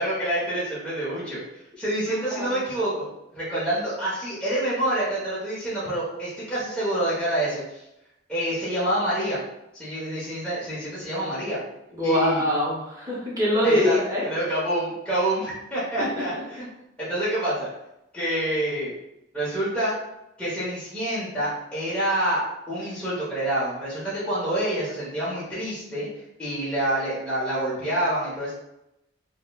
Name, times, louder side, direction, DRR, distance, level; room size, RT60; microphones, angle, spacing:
voice 1, 0.0-1.4 1.8-3.1 3.3-7.8 8.3-9.4 9.7-11.6 12.0-12.4 13.6-16.7 17.0-17.7 18.1-18.9 19.3-19.9 20.4-26.1 26.4-28.5, right 1 dB, 5° left, -10 dB, 0.9 m, -27 dB
voice 2, 11.9-14.3 16.0-16.2, left 1 dB, 20° right, -6 dB, 1.0 m, -23 dB
3.7 x 2.1 x 2.3 m, 0.88 s
head